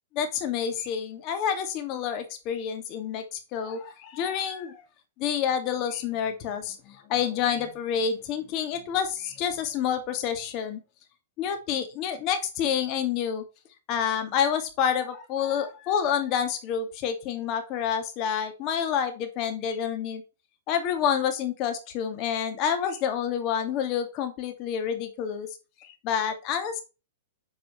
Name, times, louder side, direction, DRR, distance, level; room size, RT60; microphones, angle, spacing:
voice 1, 0.1-4.8 5.2-10.8 11.4-13.4 13.9-20.2 20.7-25.5 25.8-26.8, left 8 dB, 40° left, 7 dB, 2.5 m, -28 dB
8.5 x 4.8 x 4.5 m, 0.29 s
hypercardioid pair, 130°, 0 cm